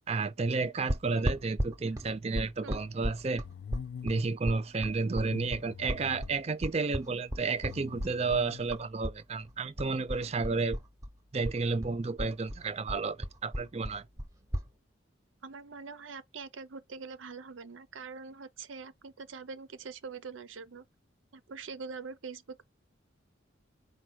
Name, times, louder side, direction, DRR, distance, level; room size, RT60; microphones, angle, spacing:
voice 1, 0.1-3.4 4.0-10.8 11.3-14.1, right 4 dB, 30° right, 0.4 m, -31 dB
sound 1, 0.9-9.2 9.4-11.1 11.4-14.7, equal, 15° right, 0.8 m, -35 dB
sound 2, 3.4-4.3 5.1-6.5 7.4-8.7, left 7 dB, 65° left, 0.3 m, -45 dB
voice 2, 15.4-20.8 21.3-22.6, right 5 dB, 80° right, 0.6 m, -44 dB
4.5 x 2.4 x 4.5 m
head